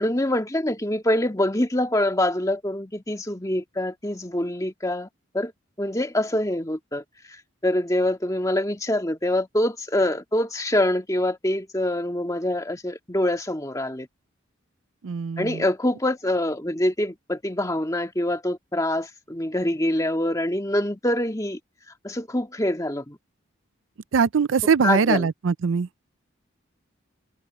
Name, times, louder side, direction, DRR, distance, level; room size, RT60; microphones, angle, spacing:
voice 1, 0.0-5.1 5.3-5.5 5.8-7.4 7.6-14.1 15.4-21.6 22.0-23.2 24.8-25.3, left 1 dB, 15° left, 2.1 m, -25 dB
voice 2, 15.0-15.6 24.1-25.9, right 6 dB, 80° right, 0.5 m, -22 dB
head